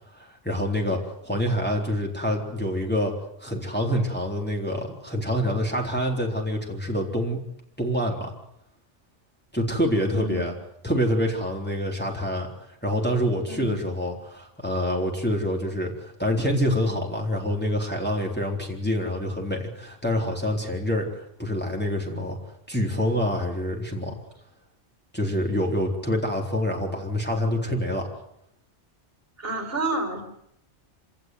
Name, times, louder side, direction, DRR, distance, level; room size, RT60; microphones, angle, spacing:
voice 1, 0.1-3.1 3.4-7.4 7.8-8.3 9.5-10.5 10.8-22.4 22.7-24.2 25.1-28.1, equal, 10° left, -1 dB, 4.0 m, -26 dB
voice 2, 10.1-10.5 13.5-13.8 29.4-30.2, right 1 dB, 55° right, 5 dB, 4.9 m, -30 dB
26.0 x 18.0 x 9.5 m, 0.77 s
omnidirectional pair, 1.2 m